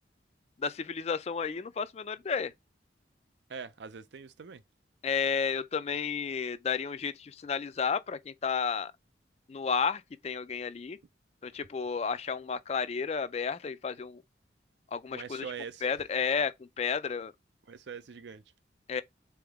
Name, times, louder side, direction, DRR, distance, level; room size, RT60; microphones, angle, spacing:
voice 1, 0.6-2.5 5.0-8.9 9.5-11.0 11.4-14.2 14.9-15.5 15.8-17.3 18.9-19.0, left 6 dB, 35° left, 0.3 m, -32 dB
voice 2, 3.5-4.6 15.1-15.8 17.7-18.4, right 6 dB, 70° right, 0.5 m, -43 dB
3.8 x 3.5 x 3.4 m
head